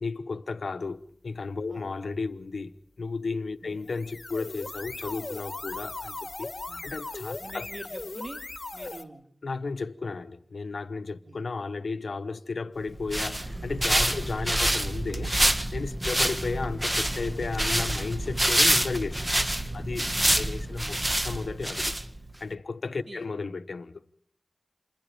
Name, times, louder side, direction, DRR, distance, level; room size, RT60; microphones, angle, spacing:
voice 1, 0.0-6.5 6.8-7.7 9.4-15.3 15.7-19.4 19.7-21.0 21.2-22.0 22.4-24.0, left 4 dB, 85° left, 1.1 m, -34 dB
sound 1, 3.8-9.0, left 2 dB, 50° left, 2.0 m, -38 dB
voice 2, 7.4-8.4 8.7-9.3 11.2-11.4 14.2-14.3 20.2-20.6 23.1-23.2, right 2 dB, 65° right, 3.9 m, -45 dB
sound 2, 12.9-22.4, right 1 dB, 20° right, 1.6 m, -27 dB
28.0 x 22.0 x 5.2 m
cardioid pair, 45°, 0 cm